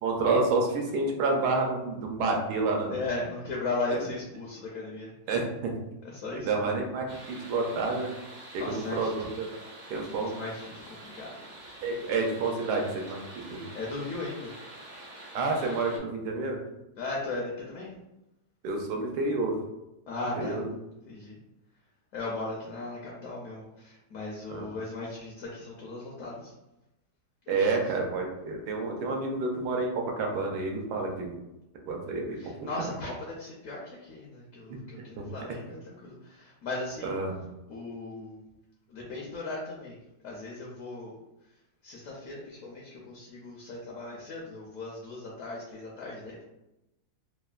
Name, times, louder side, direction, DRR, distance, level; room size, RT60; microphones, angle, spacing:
voice 1, 0.0-2.9 5.3-5.7 6.4-8.1 8.5-9.5 9.9-10.3 11.8-13.6 15.3-16.6 18.6-19.6 20.4-20.6 24.5-24.7 27.5-31.3 31.9-32.5 32.8-32.9 35.2-35.3 37.0-37.5, right 3 dB, 85° right, 1 dB, 1.2 m, -29 dB
voice 2, 2.9-5.1 6.0-6.7 8.6-9.3 10.2-11.4 13.7-14.6 17.0-17.9 20.1-20.6 21.1-21.4 22.1-26.5 27.5-27.8 32.4-37.2 37.7-38.4 38.9-40.0 40.2-41.1 41.8-46.4, left 2 dB, 70° left, -3 dB, 0.9 m, -37 dB
sound 1, 7.1-16.0, right 1 dB, 55° right, 0.9 m, -47 dB
3.2 x 2.1 x 2.3 m, 0.93 s
omnidirectional pair, 1.7 m